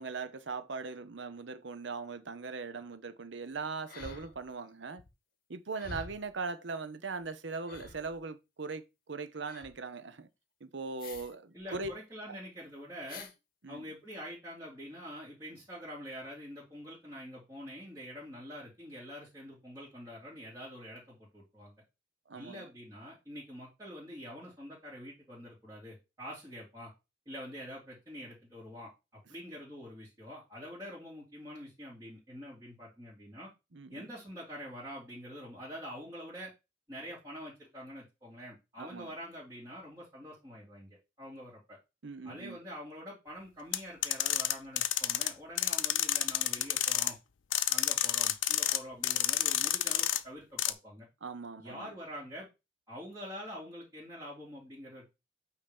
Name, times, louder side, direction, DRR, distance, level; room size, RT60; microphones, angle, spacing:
voice 1, 0.0-5.0 5.5-10.3 10.6-11.9 12.3-12.4 13.6-13.9 22.3-22.7 33.7-34.1 38.8-39.1 42.0-42.6 51.2-51.9, right 4 dB, 65° right, 0.8 m, -40 dB
sound 1, 3.9-4.7 5.0-5.1 5.7-6.3 7.2-7.3 7.6-8.2 9.5-9.8 11.0-11.3 11.6-11.9 13.1-13.3 14.1-14.2, left 3 dB, 45° left, 1.0 m, -47 dB
voice 2, 11.5-13.3 13.7-21.7 22.3-26.9 27.3-33.5 33.9-36.5 36.9-41.8 42.2-47.2 47.7-51.1 51.6-52.5 52.9-55.1, equal, 15° right, 2.8 m, -46 dB
sound 2, 43.7-45.3 45.6-47.1 47.5-48.8 49.0-50.2 50.6-50.7, left 13 dB, 75° left, 0.6 m, -29 dB
8.7 x 3.0 x 5.2 m
head